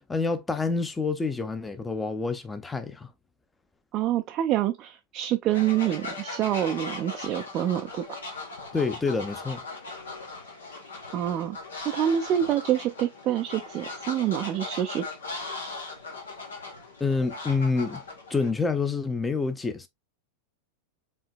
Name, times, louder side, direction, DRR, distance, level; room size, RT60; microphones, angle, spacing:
voice 1, 0.1-3.1 8.7-9.6 17.0-18.0 18.3-19.9, left 4 dB, 10° left, 0.8 m, -27 dB
voice 2, 3.9-8.0 11.1-11.6 11.8-15.1, right 11 dB, 35° right, 0.5 m, -26 dB
Fowl, 5.5-18.5, left 3 dB, 70° left, 1.8 m, -39 dB
5.6 x 3.7 x 2.5 m
figure-of-eight pair, 90°, 0 cm